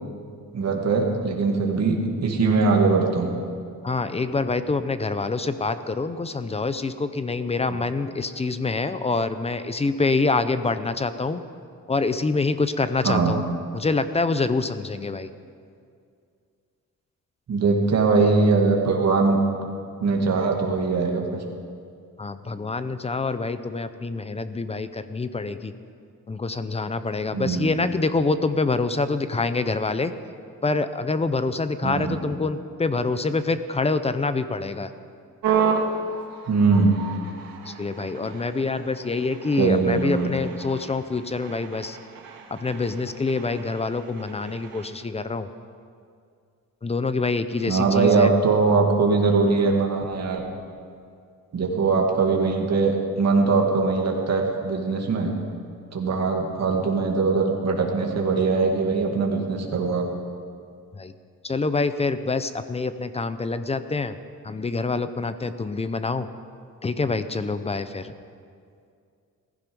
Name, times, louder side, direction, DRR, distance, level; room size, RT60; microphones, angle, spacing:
voice 1, 0.5-3.3 7.7-7.8 13.0-13.3 17.5-19.4 20.0-21.4 27.3-27.7 31.8-32.2 36.5-37.0 39.6-40.4 47.7-50.4 51.5-55.3 55.9-60.1, right 4 dB, 50° right, 0 dB, 2.2 m, -21 dB
voice 2, 3.8-11.4 11.9-13.4 13.7-15.3 22.2-25.7 26.3-30.1 30.6-34.9 37.7-42.0 42.6-45.5 46.8-48.3 60.9-61.1 61.4-64.1 64.4-66.3 66.8-68.1, left 3 dB, 20° left, 12 dB, 0.5 m, -26 dB
sound 1, 35.4-44.9, right 6 dB, 90° right, 1.9 m, -32 dB
17.0 x 15.0 x 5.3 m, 2.3 s
wide cardioid pair, 165°, 33 cm